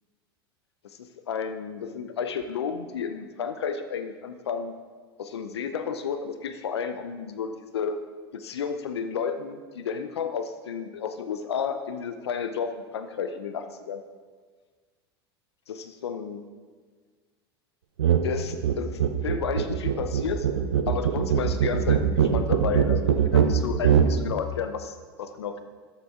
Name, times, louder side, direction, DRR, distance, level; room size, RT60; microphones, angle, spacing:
voice 1, 0.8-4.7 5.2-8.0 8.3-14.0 15.7-16.4 18.2-20.5 20.9-25.6, left 6 dB, 85° left, 9 dB, 0.6 m, -32 dB
sound 1, 18.0-18.2 18.5-24.1, right 8 dB, 85° right, 0.7 m, -22 dB
12.5 x 7.4 x 3.7 m, 1.5 s
hypercardioid pair, 85°, 13 cm